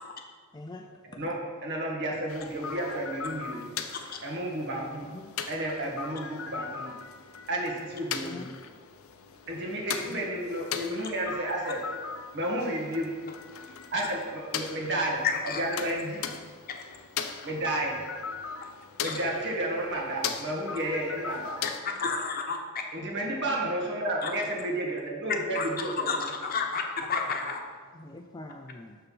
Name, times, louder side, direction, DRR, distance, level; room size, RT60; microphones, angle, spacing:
voice 1, 0.5-0.9 5.0-5.3 8.2-8.5 10.1-10.2 27.9-29.0, left 2 dB, 20° left, 4 dB, 0.4 m, -43 dB
voice 2, 1.2-3.7 4.2-5.1 5.5-6.9 7.5-8.5 9.5-11.8 12.3-13.1 13.9-16.2 17.4-18.0 19.0-21.6 22.9-26.3, right 1 dB, 55° right, -1 dB, 1.7 m, -31 dB
sound 1, 2.3-21.8, left 6 dB, 70° left, 0.6 m, -39 dB
voice 3, 15.2-15.6 16.7-16.8 19.0-19.1 21.8-22.6 24.2-24.3 25.5-27.6, left 5 dB, 45° left, 2 dB, 1.0 m, -30 dB
6.8 x 6.6 x 5.5 m, 1.5 s
head